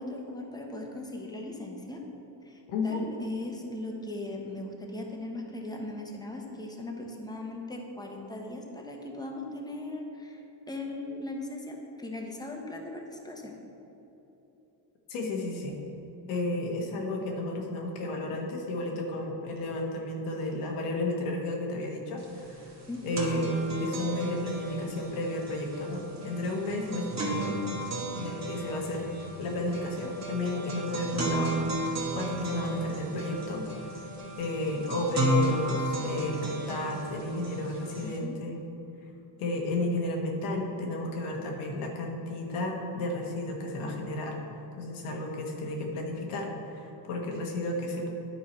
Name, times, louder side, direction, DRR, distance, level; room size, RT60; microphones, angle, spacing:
voice 1, 0.0-2.0 2.4-10.4 10.7-13.6 22.9-23.1 38.0-38.4, left 2 dB, 10° left, 1 dB, 1.1 m, -38 dB
voice 2, 2.7-3.0 15.1-15.8 16.3-22.7 23.0-27.6 28.1-29.1 29.4-31.7 32.1-33.7 34.4-38.6 39.4-44.4 44.8-48.1, left 2 dB, 85° left, 0 dB, 1.4 m, -32 dB
sound 1, 22.2-22.3 22.6-38.2, right 1 dB, 35° right, 1.4 m, -33 dB
10.0 x 4.6 x 4.4 m, 3.0 s
cardioid pair, 90°, 49 cm